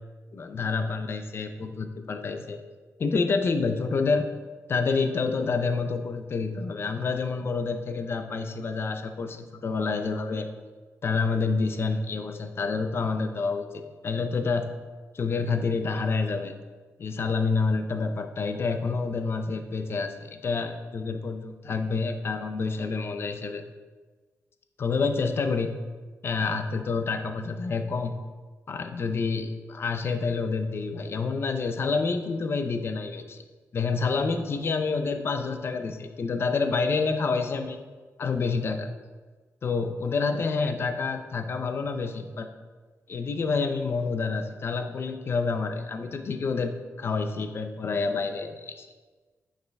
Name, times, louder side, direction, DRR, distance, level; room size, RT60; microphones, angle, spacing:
voice 1, 0.3-2.6 3.0-4.3 4.7-10.5 11.0-14.7 15.1-16.5 17.0-23.6 24.8-25.7 26.2-28.1 28.7-33.4 33.7-37.8 38.2-38.9 39.6-42.5 43.1-46.7 47.0-48.9, left 4 dB, 45° left, 7 dB, 0.5 m, -28 dB
9.4 x 4.9 x 3.4 m, 1.4 s
wide cardioid pair, 150°, 6 cm